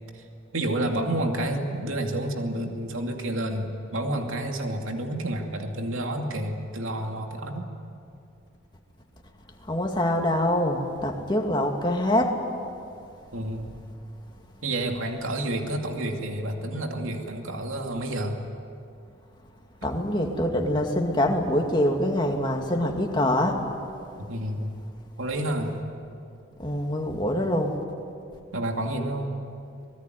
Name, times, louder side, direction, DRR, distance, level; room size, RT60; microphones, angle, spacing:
voice 1, 0.5-7.7 13.3-13.7 14.6-18.4 24.2-24.7 25.2-25.7 28.5-29.3, right 1 dB, 80° right, 3 dB, 2.5 m, -29 dB
voice 2, 9.7-12.4 19.8-23.6 26.6-27.7, left 1 dB, 20° left, 2 dB, 2.3 m, -24 dB
25.0 x 20.5 x 9.4 m, 2.5 s
head